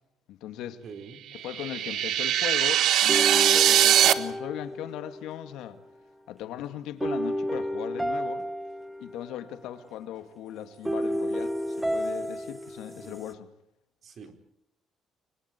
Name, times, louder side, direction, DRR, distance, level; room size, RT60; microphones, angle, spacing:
voice 1, 0.3-0.8 1.4-5.8 6.3-8.5 9.0-13.5, left 11 dB, 85° left, 2.3 m, -38 dB
voice 2, 0.8-1.2 13.0-13.2 14.0-14.3, right 5 dB, 40° right, 4.4 m, -44 dB
sound 1, 1.4-4.1, right 11 dB, 60° right, 1.4 m, -21 dB
sound 2, 3.1-5.6 7.0-9.5 10.8-13.3, equal, 5° right, 0.9 m, -31 dB
30.0 x 24.0 x 4.6 m
cardioid pair, 165°, 0 cm